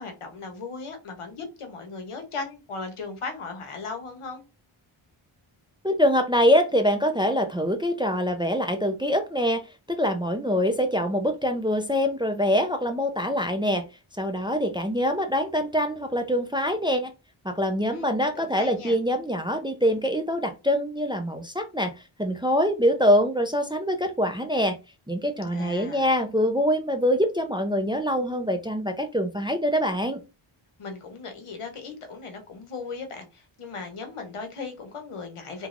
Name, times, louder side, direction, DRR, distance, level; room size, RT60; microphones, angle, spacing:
voice 1, 0.0-4.4 17.9-18.9 25.5-26.0 30.8-35.7, left 4 dB, 85° left, 5 dB, 0.9 m, -37 dB
voice 2, 5.8-13.8 14.2-17.1 17.4-21.9 22.2-24.8 25.1-30.2, equal, 10° right, 6 dB, 0.4 m, -24 dB
3.1 x 2.3 x 2.5 m, 0.27 s
wide cardioid pair, 45°, 50 cm